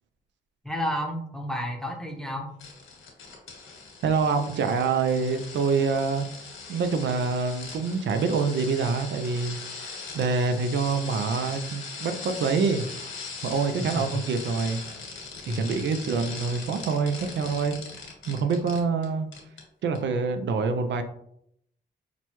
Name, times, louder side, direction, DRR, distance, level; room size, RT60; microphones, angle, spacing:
voice 1, 0.6-2.5 13.9-14.0 15.5-15.7 20.6-20.7, equal, 5° left, 1 dB, 0.8 m, -31 dB
sound 1, 2.6-19.1 19.3-19.6 20.0-20.1, left 4 dB, 85° left, 1.3 m, -40 dB
voice 2, 4.0-6.3 6.7-12.9 13.4-14.8 15.5-17.8 18.3-19.3 19.8-21.0, right 5 dB, 70° right, 8 dB, 0.4 m, -26 dB
5.9 x 2.2 x 2.9 m, 0.72 s
cardioid pair, 85°, 19 cm